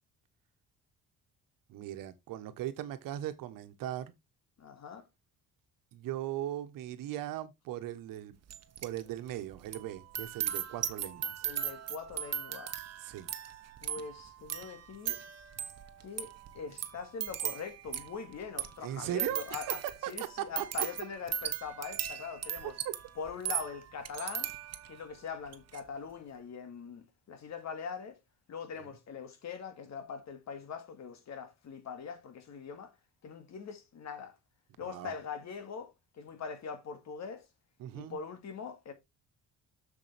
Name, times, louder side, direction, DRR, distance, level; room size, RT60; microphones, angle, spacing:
voice 1, 1.7-4.1 5.9-8.3 8.8-11.3 13.0-13.3 18.8-20.6 22.8-22.9 28.8-28.9 34.8-35.1 37.8-38.2, right 12 dB, 90° right, 1.2 m, -38 dB
voice 2, 4.6-5.1 11.4-12.7 13.8-15.2 16.0-19.8 20.1-22.7 23.2-24.5 24.9-28.2 28.5-32.9 33.2-34.3 34.8-37.5 37.9-38.9, left 6 dB, 55° left, 2.1 m, -42 dB
sound 1, 8.5-9.0 9.3-25.0 25.5-25.8, right 10 dB, 50° right, 1.1 m, -38 dB
7.1 x 6.8 x 3.4 m
cardioid pair, 110°, 32 cm